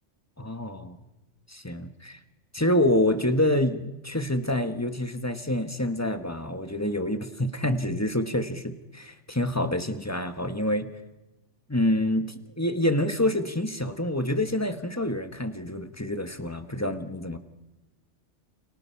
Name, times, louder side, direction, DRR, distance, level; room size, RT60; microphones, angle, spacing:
voice 1, 0.4-1.0 1.5-2.2 2.5-10.9 11.7-17.4, left 1 dB, 15° left, 8 dB, 1.4 m, -27 dB
30.0 x 28.5 x 5.7 m, 1.1 s
omnidirectional pair, 1.2 m